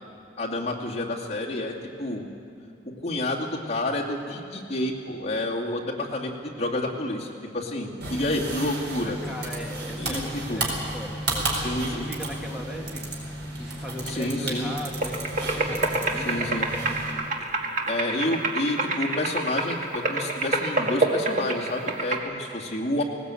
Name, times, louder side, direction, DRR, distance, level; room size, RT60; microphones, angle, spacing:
voice 1, 0.4-2.3 2.8-9.2 10.0-10.6 11.5-12.1 14.0-14.7 16.2-16.7 17.9-23.0, left 1 dB, 40° left, -3 dB, 2.4 m, -29 dB
sound 1, 8.0-17.1, right 1 dB, 70° right, 4.3 m, -32 dB
voice 2, 9.0-17.0, equal, 5° right, -1 dB, 2.1 m, -39 dB
sound 2, 15.0-22.2, right 2 dB, 50° right, 1.9 m, -28 dB
19.0 x 18.0 x 8.4 m, 2.7 s
head